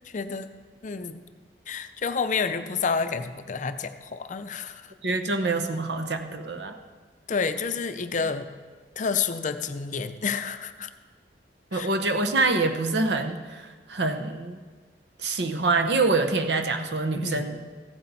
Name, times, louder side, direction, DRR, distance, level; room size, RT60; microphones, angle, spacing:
voice 1, 0.0-0.5 0.8-1.2 1.7-4.9 7.3-8.5 9.0-10.9 11.7-11.9 17.1-17.5, left 5 dB, 45° left, 10 dB, 0.5 m, -29 dB
voice 2, 5.0-6.7 11.7-14.6 15.2-17.6, right 3 dB, 70° right, 7 dB, 0.9 m, -26 dB
15.0 x 8.8 x 4.1 m, 1.4 s
head